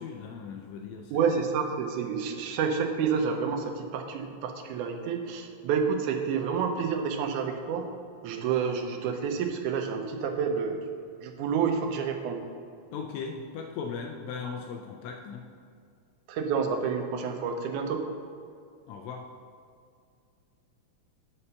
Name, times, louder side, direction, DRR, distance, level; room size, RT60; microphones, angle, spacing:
voice 1, 0.0-1.2 12.9-15.5 18.9-19.3, left 5 dB, 80° left, 3 dB, 1.7 m, -38 dB
voice 2, 1.1-7.8 8.2-10.8 11.2-12.4 16.3-18.0, right 6 dB, 90° right, 5 dB, 2.2 m, -29 dB
5.6 x 5.6 x 6.7 m, 2.3 s
omnidirectional pair, 3.4 m